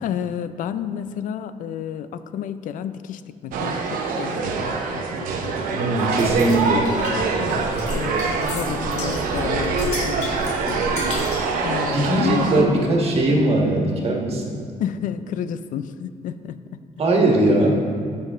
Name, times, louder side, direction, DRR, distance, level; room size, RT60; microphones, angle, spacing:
voice 1, 0.0-6.2 7.4-10.3 10.7-11.1 11.6-12.9 13.3-13.4 14.8-16.8, left 9 dB, 70° left, 12 dB, 0.4 m, -31 dB
sound 1, 3.5-12.6, right 4 dB, 85° right, 0.9 m, -24 dB
voice 2, 5.8-7.0 11.8-14.6 17.0-17.7, right 2 dB, 45° right, 0 dB, 1.5 m, -20 dB
sound 2, 6.2-11.5, left 1 dB, 50° left, 2.1 m, -32 dB
13.0 x 5.6 x 3.6 m, 2.2 s
cardioid pair, 130°, 14 cm